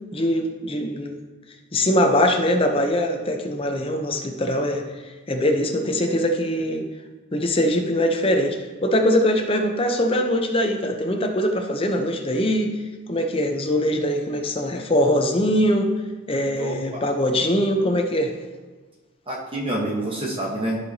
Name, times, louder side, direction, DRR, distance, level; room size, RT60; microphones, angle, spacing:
voice 1, 0.1-1.2 1.7-4.8 5.3-6.9 7.3-12.7 13.1-15.9 16.3-18.3, equal, 25° left, 4 dB, 0.7 m, -22 dB
voice 2, 16.6-17.1 19.3-20.8, right 1 dB, 25° right, -3 dB, 1.1 m, -27 dB
13.5 x 4.7 x 2.8 m, 1.3 s
head